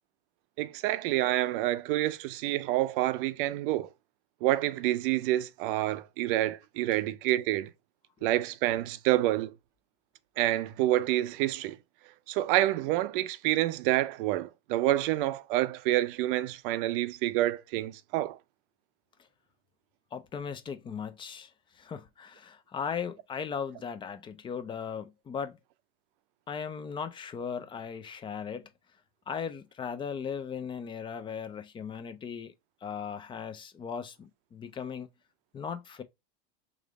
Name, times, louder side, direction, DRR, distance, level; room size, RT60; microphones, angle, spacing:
voice 1, 0.6-3.9 4.4-7.7 8.2-9.5 10.4-11.8 12.3-18.4, right 15 dB, 60° right, 0.5 m, -28 dB
voice 2, 20.1-21.5 21.8-25.6 26.5-28.7 29.3-32.5 32.8-35.1 35.5-36.0, left 6 dB, 15° left, 0.3 m, -37 dB
3.1 x 2.5 x 3.8 m
hypercardioid pair, 105°, 30 cm